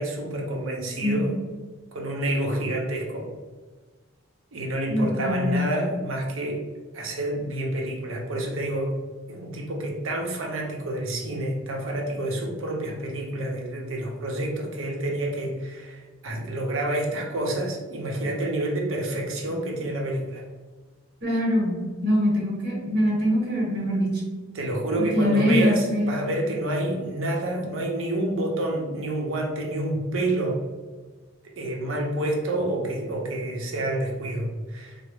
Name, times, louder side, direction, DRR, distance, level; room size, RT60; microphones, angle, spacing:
voice 1, 0.0-1.3 1.9-3.3 4.5-6.6 6.9-8.9 9.3-20.4 24.5-30.6 31.6-35.0, right 1 dB, 75° right, 0 dB, 0.7 m, -28 dB
voice 2, 4.9-5.7 21.2-24.1 25.0-26.1, equal, 50° right, -3 dB, 1.0 m, -23 dB
3.7 x 2.0 x 3.3 m, 1.3 s
head